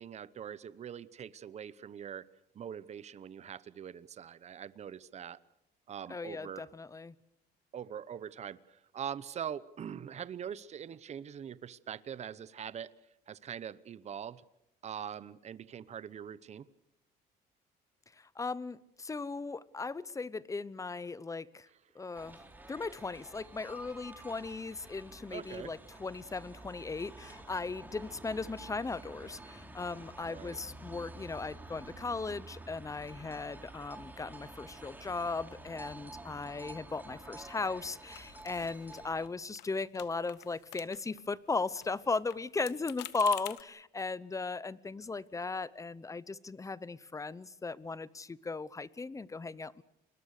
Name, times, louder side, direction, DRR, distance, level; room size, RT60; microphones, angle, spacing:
voice 1, 0.0-2.3 2.5-5.4 5.9-6.7 7.7-12.9 13.3-14.4 14.8-16.7 21.7-21.8 25.3-25.7 30.3-30.6, right 8 dB, 40° right, 17 dB, 0.9 m, -43 dB
voice 2, 6.1-7.1 18.4-21.7 22.0-22.4 22.7-49.8, left 4 dB, 20° left, 20 dB, 0.8 m, -37 dB
sound 1, 22.1-39.3, right 2 dB, 10° right, 2.9 m, -50 dB
sound 2, 38.1-39.3 39.6-39.7 40.0-41.2 41.5-43.6, left 16 dB, 80° left, 1.1 m, -48 dB
29.0 x 21.5 x 6.6 m, 0.80 s
cardioid pair, 110°, 17 cm